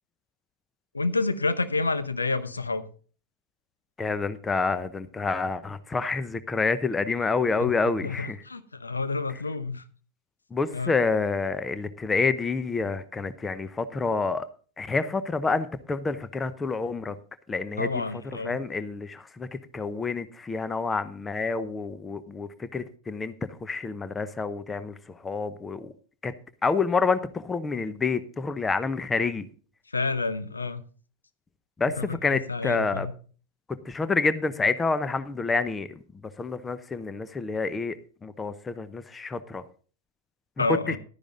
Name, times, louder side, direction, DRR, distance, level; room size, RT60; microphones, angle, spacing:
voice 1, 0.9-2.8 7.6-7.7 8.0-9.8 10.7-10.9 17.8-18.6 29.9-30.8 32.0-33.1 40.6-41.0, left 3 dB, 80° left, 0.8 m, -29 dB
voice 2, 4.0-8.4 10.5-14.5 14.8-17.2 17.5-18.0 18.4-23.3 23.6-24.9 25.2-25.9 26.2-26.3 26.6-29.5 31.8-33.1 33.8-36.0 36.4-38.0 38.2-39.6, left 4 dB, 15° left, 0.8 m, -28 dB
12.0 x 10.0 x 3.9 m
figure-of-eight pair, 90°, 0 cm